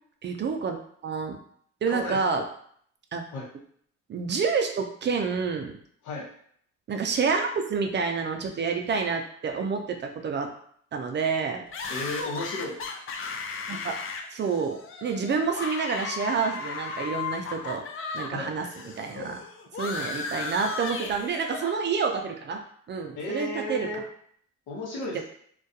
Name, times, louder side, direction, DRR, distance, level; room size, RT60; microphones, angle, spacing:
voice 1, 0.2-0.8 1.0-1.4 1.8-2.4 3.1-3.2 4.1-5.7 6.9-10.5 10.9-11.6 13.7-13.9 14.3-17.8 18.1-19.4 19.8-22.6 22.9-23.9 25.1-25.2, right 5 dB, 40° right, 5 dB, 0.4 m, -28 dB
voice 2, 1.9-2.2 3.3-3.5 6.0-6.3 11.9-12.8 18.3-18.5 23.2-24.0 24.7-25.2, left 1 dB, 85° left, -2 dB, 0.8 m, -33 dB
sound 1, 11.7-18.3 18.6-21.8, left 4 dB, 45° left, 0.4 m, -35 dB
2.3 x 2.2 x 2.6 m, 0.62 s
cardioid pair, 90°, 30 cm